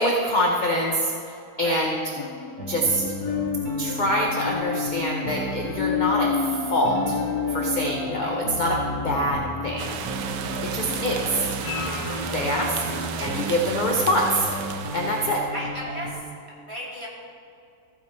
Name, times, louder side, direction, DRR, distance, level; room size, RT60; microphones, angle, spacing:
voice 1, 0.0-1.1 1.6-2.0 2.7-3.0 3.8-7.2 7.5-9.9 10.6-11.5 12.3-12.8 13.2-14.5 14.9-15.4, equal, 35° left, -1 dB, 0.8 m, -25 dB
voice 2, 1.3-1.9 8.1-8.4 13.1-13.5 15.2-16.2 16.7-17.1, equal, 15° right, -7 dB, 2.6 m, -36 dB
sound 1, 2.2-13.6 14.1-14.2, left 7 dB, 70° left, 1.0 m, -32 dB
sound 2, 2.6-16.1, right 1 dB, 60° right, 1.7 m, -34 dB
sound 3, 9.8-15.3, right 8 dB, 90° right, 1.3 m, -34 dB
14.5 x 9.4 x 3.2 m, 2.6 s
omnidirectional pair, 1.8 m